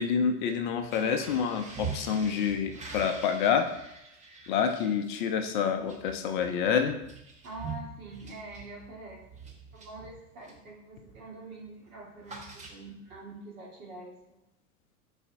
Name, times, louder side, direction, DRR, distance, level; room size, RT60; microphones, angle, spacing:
voice 1, 0.0-3.7 4.5-7.0, left 7 dB, 35° left, 7 dB, 0.4 m, -27 dB
sound 1, 0.8-10.7 11.1-11.4 11.6-13.2, right 5 dB, 15° right, 0.7 m, -44 dB
voice 2, 7.4-9.2 9.7-14.4, right 2 dB, 65° right, -3 dB, 1.4 m, -45 dB
4.9 x 3.9 x 2.5 m, 0.83 s
figure-of-eight pair, 90°, 46 cm